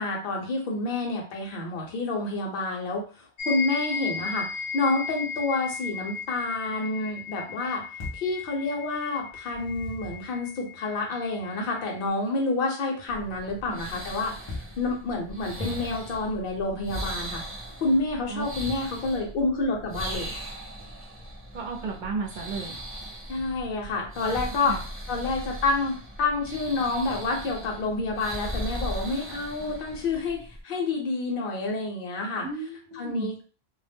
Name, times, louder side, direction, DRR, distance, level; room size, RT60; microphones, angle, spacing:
voice 1, 0.0-4.5 4.7-7.8 8.1-14.3 14.8-17.4 17.8-20.3 23.3-24.8 25.1-32.5 32.9-33.4, left 3 dB, 60° left, 0 dB, 0.8 m, -28 dB
sound 1, 3.4-12.1, left 5 dB, 90° left, 0.9 m, -36 dB
sound 2, 8.0-8.4 9.3-10.3 14.5-14.8 15.4-16.2, left 2 dB, 40° left, 0.4 m, -40 dB
sound 3, 13.1-30.6, equal, 25° right, 0.3 m, -38 dB
voice 2, 21.5-22.8 24.6-24.8 32.4-33.3, right 4 dB, 55° right, 0 dB, 0.6 m, -33 dB
2.1 x 2.0 x 3.4 m, 0.37 s
omnidirectional pair, 1.1 m